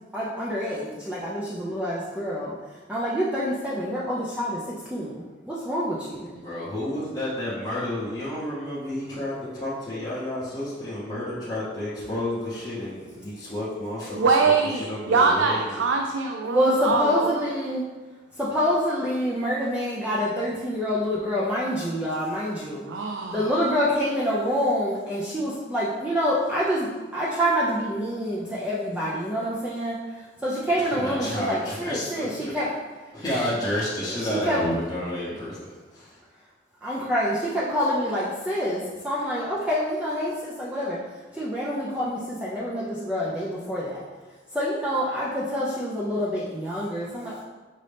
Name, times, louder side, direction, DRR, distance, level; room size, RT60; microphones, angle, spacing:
voice 1, 0.1-2.6 2.9-6.3 16.4-17.8 18.4-22.8 23.3-32.7 34.1-34.6 36.8-41.0 41.3-44.0 44.5-47.4, equal, 5° right, -7 dB, 0.4 m, -27 dB
voice 2, 6.3-15.8 30.8-32.5 33.1-35.6 35.9-36.2, left 1 dB, 20° left, -10 dB, 0.8 m, -31 dB
voice 3, 14.1-17.5 22.9-23.5, right 4 dB, 90° right, 2 dB, 0.4 m, -23 dB
5.1 x 2.7 x 3.3 m, 1.3 s
head